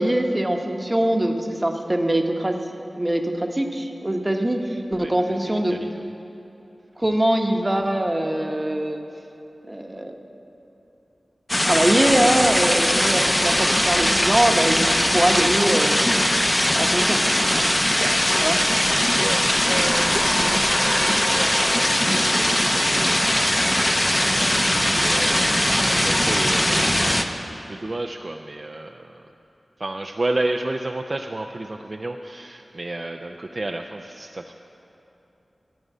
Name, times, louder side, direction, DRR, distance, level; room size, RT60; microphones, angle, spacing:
voice 1, 0.0-2.6 3.0-5.8 7.0-9.0 9.7-10.2 11.6-16.3 16.8-17.2 18.3-18.6, right 1 dB, 20° right, 4 dB, 0.9 m, -22 dB
voice 2, 5.0-6.1 19.1-27.0 27.4-29.2 29.8-34.5, right 2 dB, 45° right, 4 dB, 0.4 m, -32 dB
sound 1, 11.5-27.2, left 1 dB, 15° left, 0.6 m, -20 dB
sound 2, 19.1-23.7, left 1 dB, 45° left, 1.9 m, -32 dB
14.5 x 5.2 x 9.1 m, 2.9 s
wide cardioid pair, 80°, 0 cm